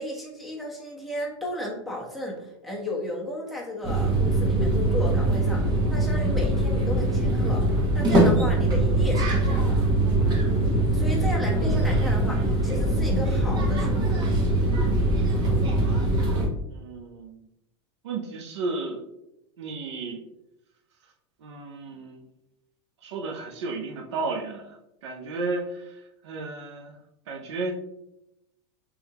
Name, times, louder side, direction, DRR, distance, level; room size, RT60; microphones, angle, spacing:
voice 1, 0.0-7.7 7.9-9.8 10.9-14.2, left 1 dB, ahead, -3 dB, 1.0 m, -34 dB
sound 1, 3.8-16.5, right 1 dB, 30° right, 1.0 m, -22 dB
voice 2, 16.7-17.4 18.0-19.0 19.6-20.2 21.4-22.3 23.0-27.0 27.3-27.7, right 3 dB, 90° right, 1 dB, 0.6 m, -33 dB
3.6 x 3.4 x 2.9 m, 0.86 s
supercardioid pair, 135°, 14 cm